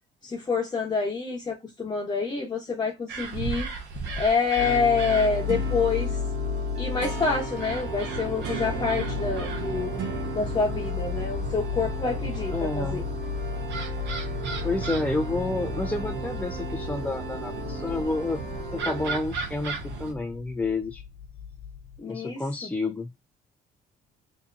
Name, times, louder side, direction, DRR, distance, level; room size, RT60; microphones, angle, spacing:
voice 1, 0.2-3.7 4.2-6.1 6.7-10.0 10.3-13.0 22.0-22.7, left 4 dB, 25° left, 1.0 m, -27 dB
sound 1, 3.1-20.1, right 5 dB, 75° right, 0.8 m, -36 dB
sound 2, 4.6-22.0, left 7 dB, 75° left, 0.8 m, -35 dB
sound 3, 4.6-19.2, right 3 dB, 90° right, 1.1 m, -37 dB
voice 2, 12.5-13.0 14.6-18.4 18.7-21.0 22.1-23.1, left 3 dB, 10° left, 0.3 m, -30 dB
3.5 x 2.8 x 2.5 m
cardioid pair, 100°, 18 cm